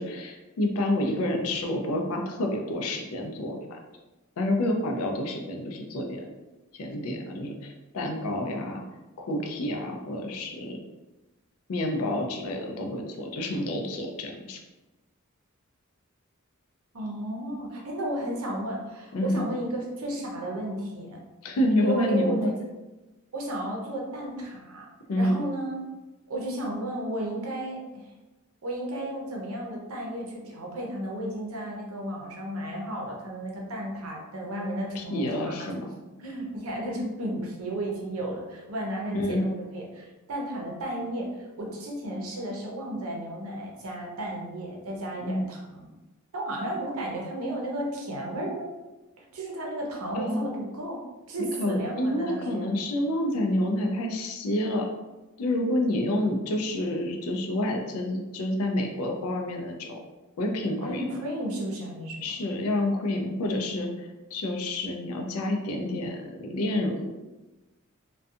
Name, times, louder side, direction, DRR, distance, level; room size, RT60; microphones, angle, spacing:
voice 1, 0.0-3.8 4.4-6.3 6.7-8.9 9.2-10.8 11.7-14.6 19.1-19.5 21.4-22.5 25.1-25.4 34.9-35.8 39.1-39.5 45.2-45.4 50.2-50.4 51.6-54.9 55.4-60.0 60.4-61.1 62.2-67.1, left 1 dB, 85° left, 2 dB, 0.4 m, -28 dB
voice 2, 16.9-21.2 21.8-22.5 23.3-24.9 25.1-25.8 26.3-28.1 28.6-35.7 36.2-45.9 46.3-48.8 49.2-51.0 51.3-52.7 60.8-62.3, right 1 dB, 85° right, -1 dB, 0.6 m, -33 dB
2.6 x 2.2 x 2.4 m, 1.1 s
head